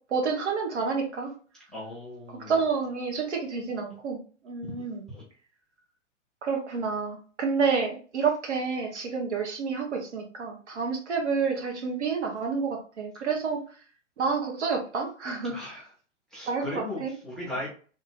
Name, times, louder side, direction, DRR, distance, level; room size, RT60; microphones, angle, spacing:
voice 1, 0.1-1.3 2.3-5.0 6.4-13.6 14.2-15.6 16.5-17.1, right 5 dB, 60° right, 1 dB, 1.3 m, -29 dB
voice 2, 1.7-2.5 5.1-5.2 15.5-15.8 16.3-17.7, left 1 dB, ahead, -7 dB, 0.5 m, -37 dB
3.2 x 2.4 x 3.0 m, 0.39 s
figure-of-eight pair, 110°, 38 cm